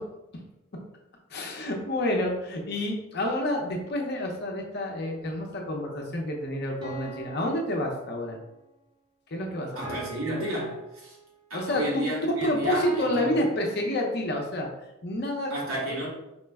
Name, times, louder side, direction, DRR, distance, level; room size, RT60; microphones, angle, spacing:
voice 1, 1.3-8.4 9.3-10.0 11.5-12.1 12.4-14.7 15.0-15.5, left 1 dB, 50° left, 1 dB, 0.6 m, -29 dB
sound 1, 5.2-5.3 6.8-8.5 9.8-11.5 12.8-14.3, right 2 dB, 20° right, 0.5 m, -42 dB
voice 2, 9.7-11.2 11.5-13.4 15.5-16.1, right 1 dB, 80° right, -4 dB, 1.3 m, -32 dB
4.3 x 2.1 x 3.3 m, 0.90 s
head